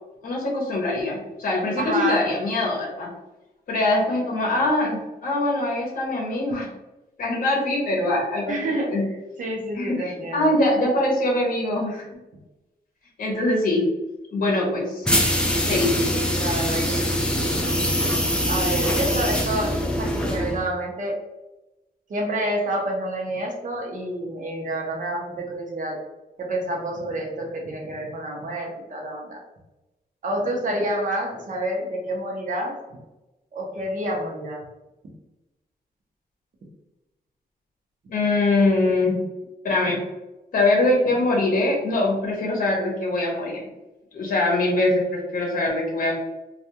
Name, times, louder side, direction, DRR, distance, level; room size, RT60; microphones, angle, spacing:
voice 1, 0.2-3.1 3.7-6.7 7.2-9.0 9.7-12.2 13.2-13.9 14.3-15.1 15.6-16.1 38.1-39.2 39.6-40.0 40.5-43.6 44.1-46.2, left 2 dB, 55° left, -1 dB, 0.7 m, -23 dB
voice 2, 1.8-2.3 8.5-8.9 9.4-10.6 16.3-17.2 18.4-21.2 22.1-26.0 26.4-29.4 30.2-32.7 33.5-34.6, right 1 dB, 55° right, 0 dB, 0.7 m, -28 dB
sound 1, 15.0-20.7, equal, 5° left, 0.3 m, -23 dB
2.3 x 2.3 x 2.8 m, 1.0 s
wide cardioid pair, 155°, 17 cm